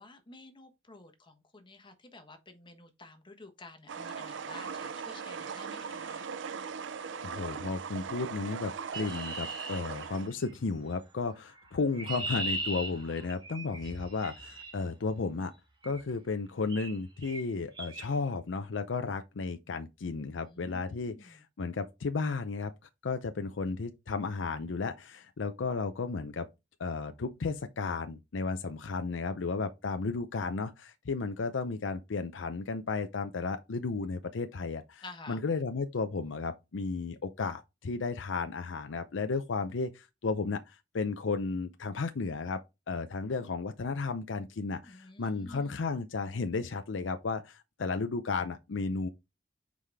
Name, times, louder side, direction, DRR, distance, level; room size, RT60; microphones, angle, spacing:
voice 1, 0.0-6.3 20.4-21.4 35.0-35.4 44.8-45.8, left 2 dB, 25° left, 1.2 m, -51 dB
sound 1, 3.9-10.3, right 6 dB, 70° right, 0.5 m, -39 dB
voice 2, 7.2-15.5 15.8-22.7 23.0-26.5 26.8-42.6 42.9-49.1, left 4 dB, 75° left, 0.5 m, -34 dB
Chirp tweet, 8.9-10.6 11.6-14.7 15.8-16.1 16.7-17.0 17.2-17.4 17.8-18.1, right 2 dB, 25° right, 1.4 m, -38 dB
5.7 x 4.9 x 3.4 m
head